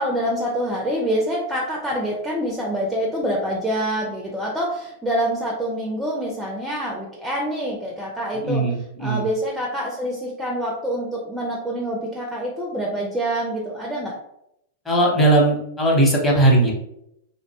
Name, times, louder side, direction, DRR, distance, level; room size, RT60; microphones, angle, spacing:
voice 1, 0.0-8.6 9.0-14.2, equal, 5° right, -2 dB, 0.4 m, -26 dB
voice 2, 8.3-9.3 14.8-16.7, right 2 dB, 15° left, -3 dB, 0.9 m, -18 dB
2.6 x 2.1 x 2.8 m, 0.78 s
hypercardioid pair, 125°, 0 cm